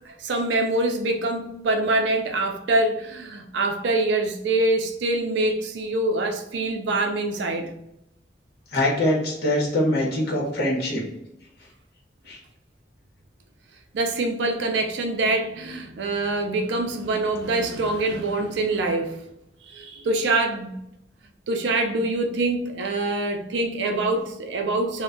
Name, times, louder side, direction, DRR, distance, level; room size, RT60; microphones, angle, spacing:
voice 1, 0.0-7.7 13.9-19.2 19.7-20.8 21.5-25.0, right 2 dB, 85° right, 0.4 m, -25 dB
voice 2, 8.7-11.0 12.3-12.4, left 1 dB, 60° left, 0.8 m, -23 dB
2.2 x 2.1 x 3.7 m
head